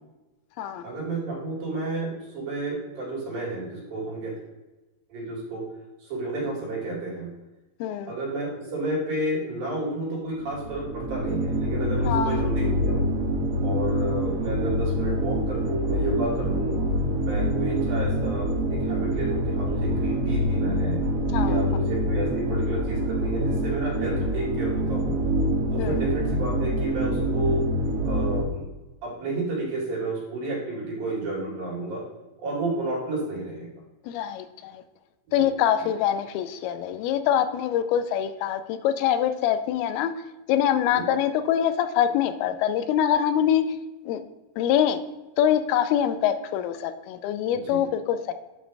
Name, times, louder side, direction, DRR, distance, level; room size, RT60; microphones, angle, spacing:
voice 1, 0.8-4.3 5.1-5.6 6.0-7.3 8.1-13.1 13.6-16.8 17.2-21.0 21.4-25.2 25.7-27.6 28.1-28.7 29.0-32.0 32.4-33.7 35.4-35.5 40.9-41.1 47.5-47.8, right 2 dB, 70° right, -5 dB, 4.3 m, -31 dB
voice 2, 7.8-8.1 12.0-12.4 21.3-21.6 25.8-25.9 34.1-34.8 35.3-40.1 40.5-43.6 44.1-44.2 44.6-45.0 45.4-48.3, left 10 dB, 90° left, 10 dB, 2.5 m, -24 dB
sound 1, 10.4-28.4, equal, 85° right, 2.9 m, -25 dB
10.0 x 5.2 x 3.3 m, 1.1 s
omnidirectional pair, 4.4 m